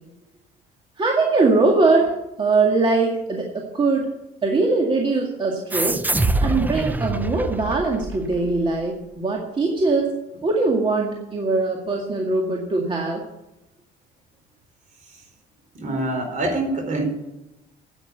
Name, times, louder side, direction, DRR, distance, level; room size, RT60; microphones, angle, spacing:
voice 1, 1.0-4.1 4.4-6.0 6.4-10.2 10.4-13.2, right 3 dB, 30° right, 0 dB, 2.1 m, -21 dB
sound 1, 5.7-8.8, right 2 dB, 10° right, 0.6 m, -25 dB
voice 2, 15.7-17.0, right 1 dB, 50° right, 4 dB, 4.3 m, -25 dB
9.9 x 9.0 x 8.0 m, 0.94 s
cardioid pair, 110°, 17 cm